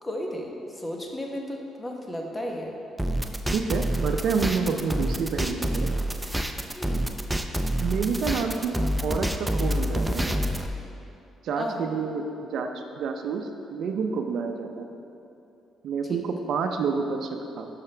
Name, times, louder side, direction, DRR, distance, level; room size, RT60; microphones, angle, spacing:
voice 1, 0.0-2.7 6.7-7.1 11.6-11.9 16.1-16.2, left 1 dB, 20° left, 0 dB, 1.0 m, -34 dB
sound 1, 3.0-10.7, right 1 dB, 10° right, 0.5 m, -27 dB
voice 2, 3.5-5.9 7.8-10.4 11.4-15.0 15.8-17.3 17.6-17.7, right 5 dB, 70° right, 5 dB, 0.5 m, -28 dB
9.7 x 5.7 x 3.3 m, 2.8 s
cardioid pair, 90°, 0 cm